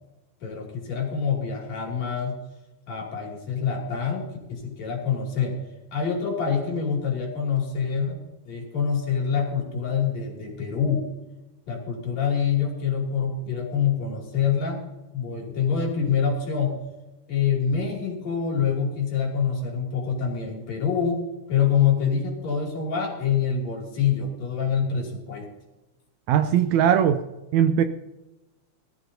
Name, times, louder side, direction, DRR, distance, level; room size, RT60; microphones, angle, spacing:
voice 1, 0.4-2.4 2.9-5.6 5.9-8.2 8.5-11.0 11.7-14.8 15.1-16.7 17.3-21.2 21.5-25.5, left 7 dB, 60° left, -1 dB, 4.0 m, -26 dB
voice 2, 26.3-27.2 27.5-27.8, right 9 dB, 80° right, 9 dB, 1.9 m, -19 dB
19.5 x 13.5 x 2.7 m, 1.0 s
omnidirectional pair, 3.5 m